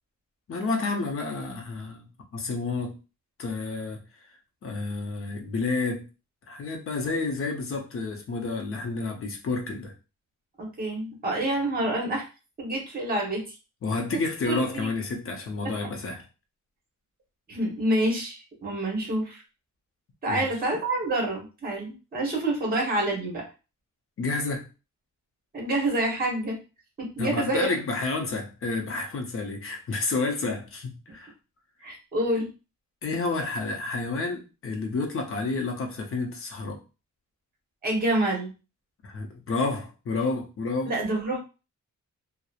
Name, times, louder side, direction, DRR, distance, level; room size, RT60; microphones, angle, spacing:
voice 1, 0.5-2.1 2.3-2.9 3.4-4.3 4.6-6.0 6.5-9.9 13.8-16.2 20.3-20.5 24.2-24.7 27.2-31.3 33.0-36.8 39.0-40.9, left 3 dB, 45° left, 2 dB, 0.6 m, -30 dB
voice 2, 10.6-12.3 12.6-13.5 14.5-14.9 15.6-15.7 17.5-19.4 20.2-23.4 25.5-26.6 27.0-27.7 31.8-32.5 37.8-38.5 40.8-41.4, right 1 dB, 30° right, -1 dB, 0.9 m, -27 dB
2.8 x 2.0 x 2.3 m, 0.31 s
wide cardioid pair, 170°, 31 cm